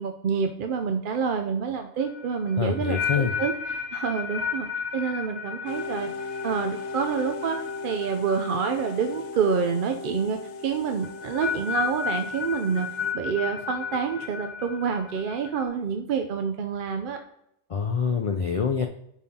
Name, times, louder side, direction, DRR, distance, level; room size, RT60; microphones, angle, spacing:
voice 1, 0.0-3.5 3.9-4.7 4.9-6.1 6.4-7.6 7.8-10.4 10.6-12.9 13.1-17.2, right 6 dB, 60° right, 5 dB, 0.7 m, -27 dB
sound 1, 2.0-9.1 9.4-9.8 11.0-15.6, left 6 dB, 40° left, 1.4 m, -33 dB
voice 2, 2.6-3.3 17.7-18.9, left 6 dB, 55° left, 5 dB, 0.4 m, -25 dB
sound 2, 5.7-13.1, left 4 dB, 80° left, 0.9 m, -37 dB
11.0 x 5.5 x 2.8 m, 0.77 s
omnidirectional pair, 1.1 m